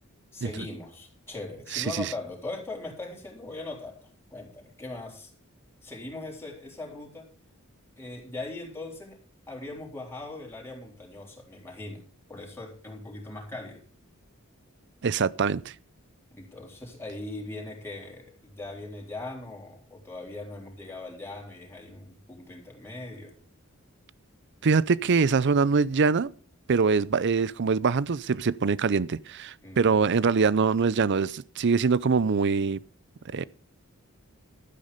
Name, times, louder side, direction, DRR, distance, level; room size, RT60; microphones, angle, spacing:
voice 1, 0.3-5.3 5.8-7.3 8.0-9.2 9.5-12.0 12.3-13.8 16.3-23.3 29.6-30.1, left 2 dB, 10° left, 4.0 m, -40 dB
voice 2, 1.7-2.1 15.0-15.7 24.6-26.3 26.7-32.8 33.3-33.4, right 5 dB, 55° right, 0.5 m, -24 dB
12.0 x 9.7 x 5.2 m
head